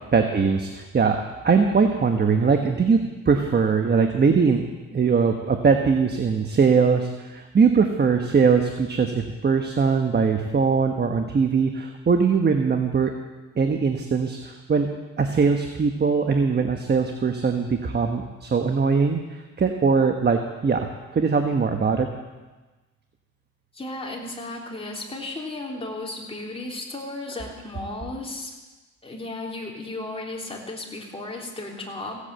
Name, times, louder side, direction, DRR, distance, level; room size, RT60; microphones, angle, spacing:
voice 1, 0.1-1.2 1.4-3.0 3.2-4.6 4.9-13.1 13.6-14.9 15.2-22.1, right 5 dB, 35° right, 5 dB, 1.2 m, -21 dB
voice 2, 23.7-28.5 29.0-32.2, left 2 dB, 20° left, -1 dB, 3.3 m, -34 dB
16.0 x 8.5 x 7.8 m, 1.2 s
cardioid pair, 90°, 30 cm